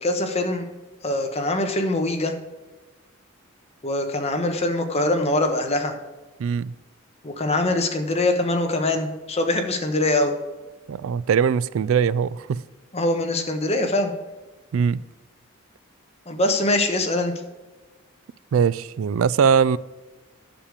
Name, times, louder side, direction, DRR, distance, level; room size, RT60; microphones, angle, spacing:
voice 1, 0.0-0.7 1.0-2.3 3.8-5.9 7.2-10.3 12.9-14.1 16.3-17.3, left 2 dB, 30° left, 1.2 m, -23 dB
voice 2, 6.4-6.7 10.9-12.6 14.7-15.0 18.5-19.8, right 6 dB, 75° right, 0.3 m, -21 dB
10.0 x 6.8 x 5.0 m
head